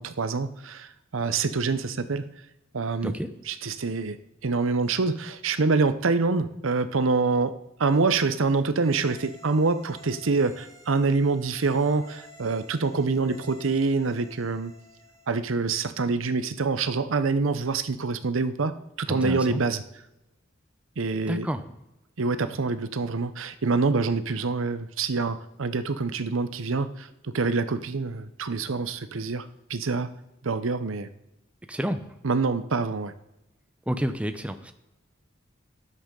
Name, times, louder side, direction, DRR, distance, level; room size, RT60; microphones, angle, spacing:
voice 1, 0.0-2.3 2.7-3.1 3.5-4.2 4.4-14.7 15.3-19.8 21.0-21.5 22.2-30.1 30.4-31.1 32.2-33.1, right 4 dB, 90° right, 12 dB, 0.7 m, -26 dB
sound 1, 8.8-15.4, left 2 dB, 30° left, 4.3 m, -52 dB
voice 2, 19.1-19.6 21.3-21.6 31.7-32.0 33.9-34.7, equal, 5° right, 9 dB, 0.6 m, -29 dB
13.0 x 10.0 x 3.8 m, 0.93 s
head